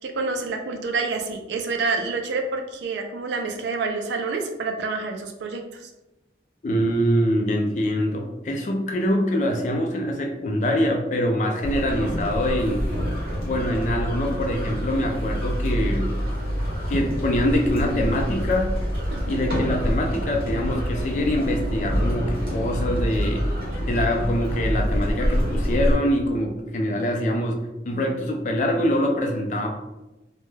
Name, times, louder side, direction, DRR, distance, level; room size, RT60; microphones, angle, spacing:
voice 1, 0.0-5.9 19.1-19.4 27.2-27.3, right 4 dB, 80° right, 5 dB, 0.4 m, -28 dB
voice 2, 6.6-12.9 13.4-16.1 16.9-18.7 19.3-23.4 23.8-27.6 27.9-29.7, equal, 40° left, 2 dB, 0.4 m, -24 dB
sound 1, 11.6-26.0, equal, 55° right, 1.0 m, -26 dB
2.2 x 2.1 x 3.1 m, 1.0 s
head